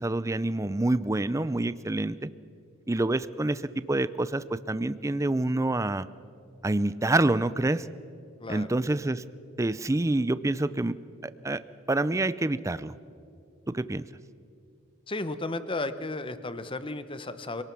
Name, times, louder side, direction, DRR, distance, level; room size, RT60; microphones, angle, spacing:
voice 1, 0.0-2.3 2.9-3.6 3.9-6.1 6.6-7.9 8.5-9.2 9.6-11.0 11.2-11.6 11.9-12.9 13.7-14.1, right 2 dB, 15° right, 16 dB, 0.4 m, -27 dB
voice 2, 15.1-17.6, left 2 dB, 25° left, 12 dB, 0.9 m, -34 dB
26.5 x 18.5 x 6.0 m, 2.5 s
head